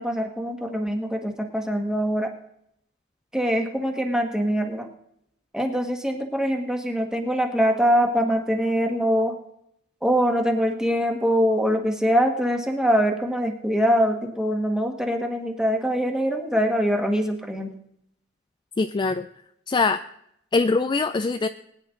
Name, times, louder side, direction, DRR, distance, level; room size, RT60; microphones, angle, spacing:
voice 1, 0.0-2.3 3.3-4.9 5.5-9.3 10.0-17.7, equal, 5° right, 3 dB, 1.6 m, -23 dB
voice 2, 18.8-19.3 19.7-20.0 20.5-21.5, left 3 dB, 20° left, 9 dB, 0.4 m, -22 dB
20.5 x 9.9 x 3.8 m, 0.76 s
head